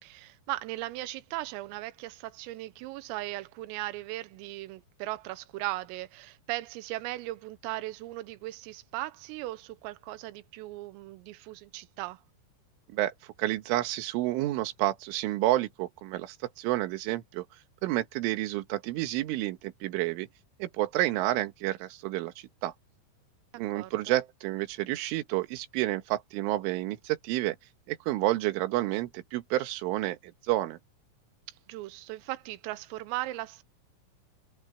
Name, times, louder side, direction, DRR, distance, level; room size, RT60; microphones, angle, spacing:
voice 1, 0.0-12.2 23.5-24.2 31.7-33.6, right 17 dB, 90° right, 3.5 m, -38 dB
voice 2, 13.4-17.5 17.8-20.3 20.6-22.7 23.6-27.6 27.9-30.8, right 16 dB, 75° right, 3.8 m, -30 dB
omnidirectional pair, 5.9 m